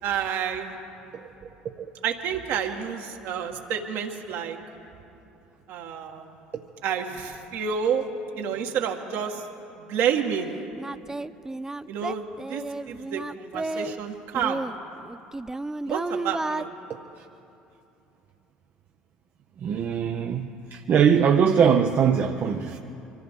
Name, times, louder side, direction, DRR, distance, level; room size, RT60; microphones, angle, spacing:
voice 1, 0.0-0.8 2.0-4.6 5.7-6.4 6.8-8.1 8.4-9.5 9.8-10.5 11.9-12.2 12.5-14.6 15.9-16.7, right 7 dB, 65° right, 2 dB, 1.6 m, -29 dB
Singing, 10.2-10.3 10.8-14.0 14.3-16.6, right 2 dB, 10° right, 0.4 m, -32 dB
voice 2, 19.6-22.8, right 7 dB, 45° right, 3 dB, 0.7 m, -21 dB
25.0 x 15.0 x 3.7 m, 2.8 s
hypercardioid pair, 65°, 5 cm